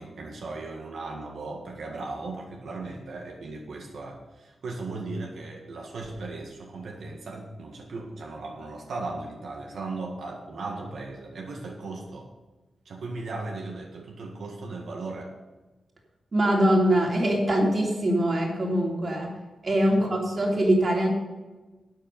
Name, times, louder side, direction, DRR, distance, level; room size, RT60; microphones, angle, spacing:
voice 1, 0.0-12.3 12.8-15.3, right 3 dB, 80° right, 0 dB, 1.8 m, -37 dB
voice 2, 16.3-19.3 19.6-21.1, right 1 dB, 35° right, -1 dB, 3.0 m, -23 dB
12.5 x 9.3 x 5.4 m, 1.2 s
wide cardioid pair, 170°, 0 cm